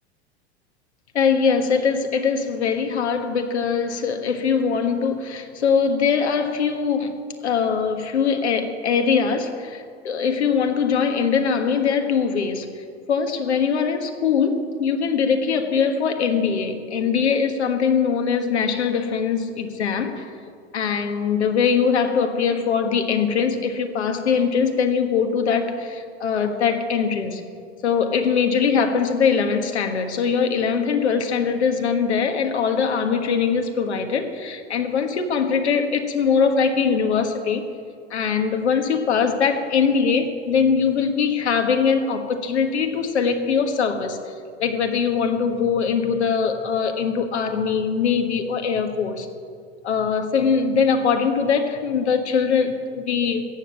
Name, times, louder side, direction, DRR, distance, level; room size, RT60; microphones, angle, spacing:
voice 1, 1.1-20.3 20.7-27.4 27.8-37.6 38.1-44.3 44.6-49.3 49.8-53.4, left 6 dB, 85° left, 5 dB, 1.5 m, -22 dB
14.5 x 7.8 x 8.7 m, 2.2 s
hypercardioid pair, 90°, 33 cm